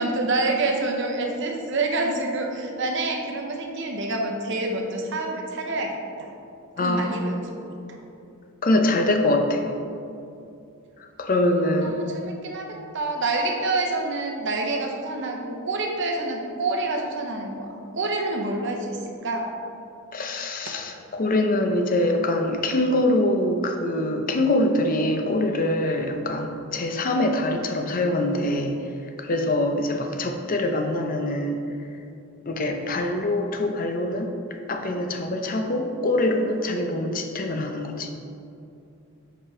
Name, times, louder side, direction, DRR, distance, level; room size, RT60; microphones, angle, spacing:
voice 1, 0.0-6.3 6.8-7.3 7.6-7.7 11.4-17.7 17.9-19.5 20.6-20.7, right 2 dB, 55° right, 2 dB, 0.8 m, -27 dB
voice 2, 6.8-7.1 8.6-9.6 11.2-12.0 20.1-28.8 29.2-31.6 32.5-34.3 34.7-38.1, left 1 dB, 40° left, 4 dB, 0.5 m, -24 dB
5.6 x 4.9 x 4.8 m, 2.6 s
head